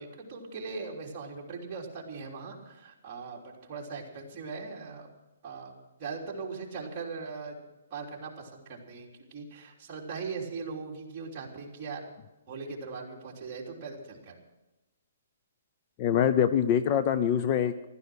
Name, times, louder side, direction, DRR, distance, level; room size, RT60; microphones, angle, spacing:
voice 1, 0.0-5.1 5.4-5.7 6.0-7.6 7.9-12.1 12.5-14.4, right 4 dB, 25° right, -3 dB, 3.3 m, -40 dB
voice 2, 16.0-17.9, left 9 dB, 25° left, 11 dB, 0.5 m, -24 dB
15.5 x 13.0 x 6.2 m, 1.0 s
hypercardioid pair, 165°, 0 cm